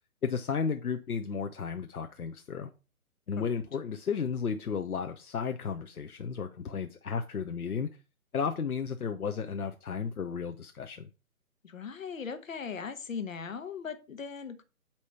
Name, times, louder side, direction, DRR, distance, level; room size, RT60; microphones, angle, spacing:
voice 1, 0.2-2.7 3.3-8.0 8.3-11.1, left 6 dB, 80° left, 6 dB, 0.9 m, -33 dB
voice 2, 11.6-14.6, left 6 dB, 65° left, 9 dB, 1.2 m, -39 dB
8.7 x 3.0 x 5.8 m, 0.31 s
figure-of-eight pair, 150°, 43 cm